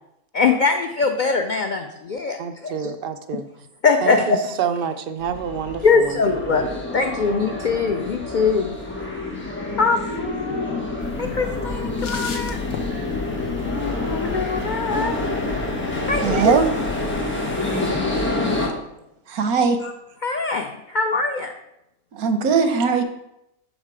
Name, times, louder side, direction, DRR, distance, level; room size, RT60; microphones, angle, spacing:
voice 1, 0.3-2.9 3.8-4.4 5.8-6.6 6.9-8.7 9.8-10.8 11.2-12.6 13.6-15.1 16.1-16.6 19.8-19.9 20.2-21.5, left 4 dB, 80° left, 5 dB, 0.4 m, -22 dB
voice 2, 2.4-3.5 4.0-6.1 6.5-6.7, right 7 dB, 70° right, 8 dB, 0.5 m, -28 dB
sound 1, 5.2-18.7, left 2 dB, 10° left, 1.2 m, -27 dB
sound 2, 11.0-17.2, left 4 dB, 50° left, 1.0 m, -34 dB
voice 3, 16.2-16.7 19.3-19.8 22.1-23.0, right 5 dB, 90° right, 8 dB, 1.3 m, -19 dB
6.4 x 5.0 x 4.9 m, 0.84 s
omnidirectional pair, 1.5 m